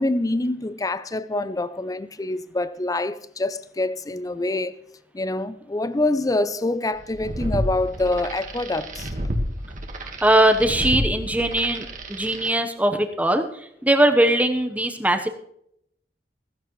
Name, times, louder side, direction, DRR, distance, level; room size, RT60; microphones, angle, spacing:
voice 1, 0.0-4.7 5.1-9.1, left 2 dB, 20° left, 0.5 m, -25 dB
sound 1, 7.0-12.5, equal, 45° right, 1.6 m, -30 dB
voice 2, 10.2-15.3, right 1 dB, 10° right, 1.0 m, -20 dB
15.0 x 15.0 x 3.2 m
head